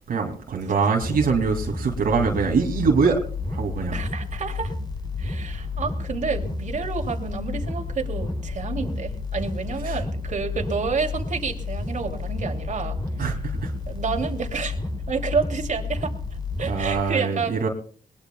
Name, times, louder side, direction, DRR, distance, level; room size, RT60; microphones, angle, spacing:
voice 1, 0.1-3.2 3.5-4.0 9.8-10.0 13.2-13.7 16.6-17.7, right 5 dB, 90° right, 2.6 m, -23 dB
sound 1, 1.0-17.0, left 3 dB, 30° left, 5.0 m, -31 dB
voice 2, 3.9-4.7 5.2-13.0 13.9-14.8 15.1-16.1 16.6-17.5, right 5 dB, 60° right, 2.8 m, -29 dB
21.5 x 20.5 x 2.3 m
cardioid pair, 95°, 14 cm